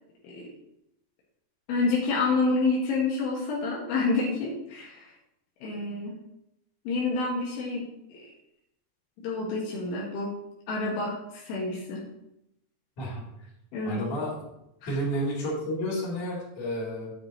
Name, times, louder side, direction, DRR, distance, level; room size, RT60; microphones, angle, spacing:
voice 1, 1.7-5.1 5.6-6.2 6.9-7.8 8.1-8.3 9.2-10.3 10.7-12.0 13.7-14.0 14.8-15.0, left 3 dB, 75° left, -4 dB, 3.9 m, -28 dB
voice 2, 13.8-14.5 14.9-17.1, equal, 40° left, -6 dB, 3.9 m, -31 dB
9.8 x 9.6 x 3.1 m, 0.83 s
omnidirectional pair, 5.8 m